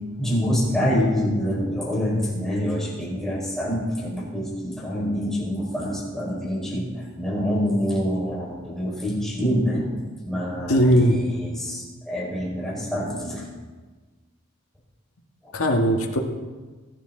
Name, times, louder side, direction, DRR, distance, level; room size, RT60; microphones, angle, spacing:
voice 1, 0.2-9.9 10.2-13.5, equal, ahead, -5 dB, 4.9 m, -26 dB
voice 2, 10.7-11.2 15.5-16.2, equal, 90° left, 1 dB, 1.5 m, -18 dB
22.5 x 10.5 x 3.9 m, 1.3 s
head